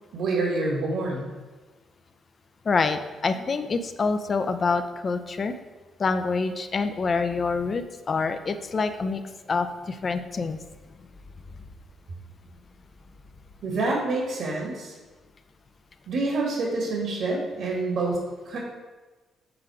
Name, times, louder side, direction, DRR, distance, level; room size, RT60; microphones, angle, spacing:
voice 1, 0.1-1.3 13.6-14.9 16.1-18.2 18.5-18.6, right 2 dB, 75° right, -2 dB, 1.7 m, -27 dB
voice 2, 2.7-5.5 6.0-9.2 9.5-10.6, left 4 dB, 40° left, 9 dB, 0.5 m, -26 dB
7.8 x 3.7 x 4.8 m, 1.2 s
cardioid pair, 90°, 0 cm